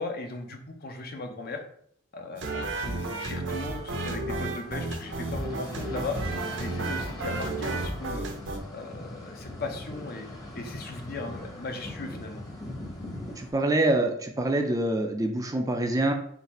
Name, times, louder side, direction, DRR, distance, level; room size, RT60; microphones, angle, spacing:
voice 1, 0.0-1.6 2.1-6.2 6.6-8.3 8.7-10.3 10.5-12.4, left 3 dB, 50° left, 4 dB, 0.6 m, -37 dB
sound 1, 2.4-8.6, right 2 dB, 65° right, 0.6 m, -32 dB
sound 2, 3.4-13.5, left 1 dB, 20° left, 0.9 m, -41 dB
voice 2, 13.4-16.1, right 2 dB, 15° right, 4 dB, 0.4 m, -25 dB
3.9 x 2.5 x 4.1 m, 0.66 s
head